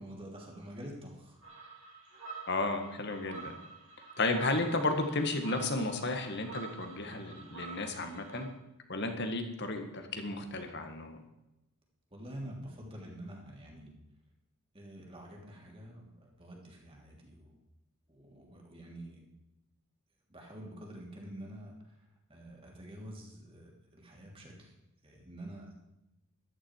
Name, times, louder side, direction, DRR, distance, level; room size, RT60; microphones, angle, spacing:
voice 1, 0.0-1.4 12.1-13.9 14.7-17.6 18.1-19.3 20.3-22.0 22.3-24.7 25.0-25.7, right 1 dB, 25° right, -1 dB, 3.2 m, -47 dB
sound 1, 1.4-8.4, right 4 dB, 70° right, 5.2 m, -48 dB
voice 2, 2.5-3.5 4.2-8.5 8.9-11.2, left 2 dB, 50° left, 6 dB, 1.9 m, -33 dB
14.0 x 12.5 x 4.8 m, 0.92 s
head